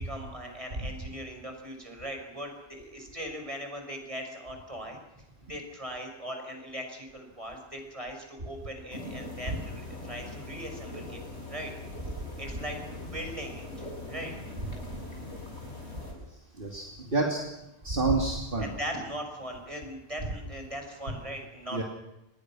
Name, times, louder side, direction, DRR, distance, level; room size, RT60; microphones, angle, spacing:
voice 1, 0.0-5.2 5.5-11.2 11.5-11.7 12.4-14.3 18.6-21.8, equal, 30° right, 3 dB, 5.9 m, -39 dB
sound 1, 8.9-16.1, left 2 dB, 90° left, 7.9 m, -41 dB
voice 2, 16.6-17.4 17.8-18.7 21.7-21.8, right 3 dB, 55° right, 0 dB, 2.9 m, -28 dB
27.0 x 21.0 x 6.2 m, 0.94 s
omnidirectional pair, 1.1 m